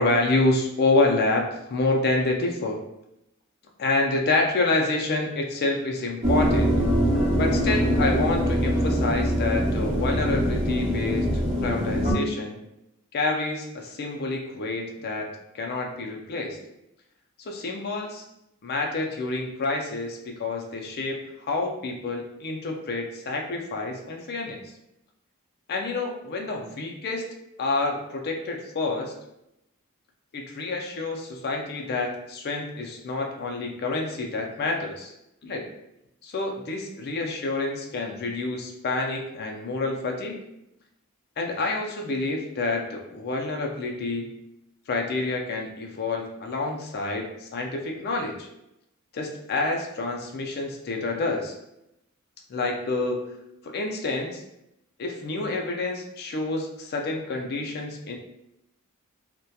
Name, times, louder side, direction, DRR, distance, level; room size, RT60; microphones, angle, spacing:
voice 1, 0.0-2.8 3.8-6.7 7.4-11.3 11.6-12.6 13.1-15.3 15.5-16.6 17.4-18.2 18.6-24.6 25.7-27.2 27.6-29.1 30.3-35.1 35.4-35.7 36.2-40.4 41.4-44.3 44.9-48.5 49.1-51.5 52.5-53.2 53.6-54.4 55.0-58.2, left 2 dB, 50° left, 2 dB, 0.4 m, -28 dB
sound 1, 6.2-12.1, equal, 35° right, 0.7 m, -23 dB
2.7 x 2.1 x 2.2 m, 0.84 s
head